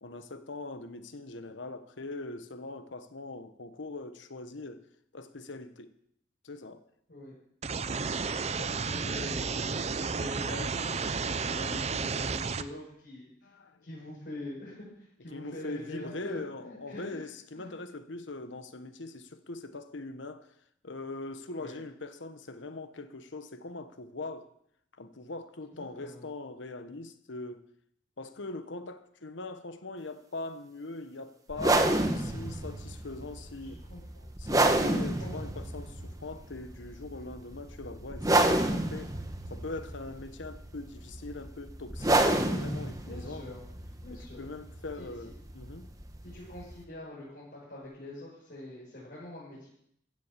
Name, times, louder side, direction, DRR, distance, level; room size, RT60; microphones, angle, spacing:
voice 1, 0.0-4.8 5.1-5.9 6.4-6.8 13.4-13.8 15.3-20.5 20.8-24.5 25.0-27.7 28.2-33.8 34.4-39.1 39.5-43.5 44.4-45.9, left 2 dB, 80° left, 1.2 m, -41 dB
sound 1, 7.6-12.6, right 4 dB, 35° right, 0.6 m, -32 dB
voice 2, 7.8-13.5 13.8-17.2 17.5-17.7 21.6-21.8 25.7-26.3 33.6-34.3 35.2-35.5 39.8-39.9 43.1-43.6 44.0-44.5 45.0-45.1 46.2-49.7, left 1 dB, 55° left, 5.6 m, -44 dB
sound 2, 31.5-46.8, right 1 dB, 20° right, 1.1 m, -30 dB
15.0 x 7.6 x 7.5 m
head